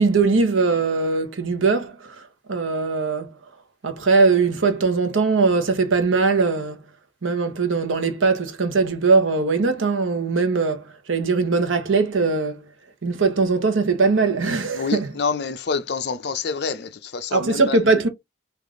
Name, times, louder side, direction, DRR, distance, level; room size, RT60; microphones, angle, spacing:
voice 1, 0.0-2.2 2.5-3.3 3.8-6.8 7.2-12.6 13.0-15.2 17.3-18.1, right 4 dB, 80° right, 0.8 m, -20 dB
voice 2, 14.8-17.6, left 5 dB, 55° left, 0.5 m, -27 dB
3.4 x 2.4 x 3.6 m
head